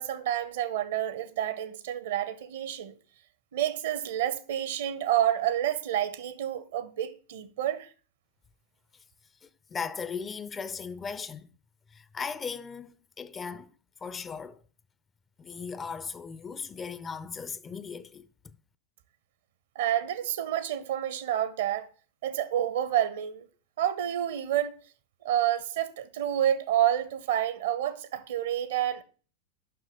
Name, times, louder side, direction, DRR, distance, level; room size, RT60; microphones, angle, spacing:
voice 1, 0.0-2.9 3.5-7.9 19.7-21.9 22.2-23.5 23.8-24.8 25.2-29.0, right 11 dB, 60° right, 0.8 m, -29 dB
voice 2, 9.4-11.5 11.9-13.7 14.0-14.6 15.4-18.6, left 5 dB, 20° left, 0.5 m, -38 dB
6.9 x 5.8 x 7.2 m
figure-of-eight pair, 90°, 0 cm